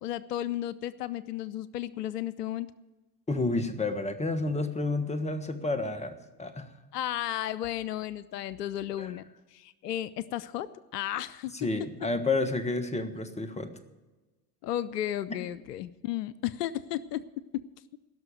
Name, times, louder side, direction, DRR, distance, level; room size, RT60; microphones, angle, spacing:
voice 1, 0.0-2.7 6.9-9.2 9.5-11.7 14.6-17.2, left 12 dB, 85° left, 18 dB, 0.6 m, -34 dB
voice 2, 3.3-6.7 9.0-9.1 11.5-13.7, left 2 dB, 15° left, 9 dB, 1.5 m, -30 dB
16.5 x 6.4 x 9.1 m, 1.2 s
hypercardioid pair, 70°, 46 cm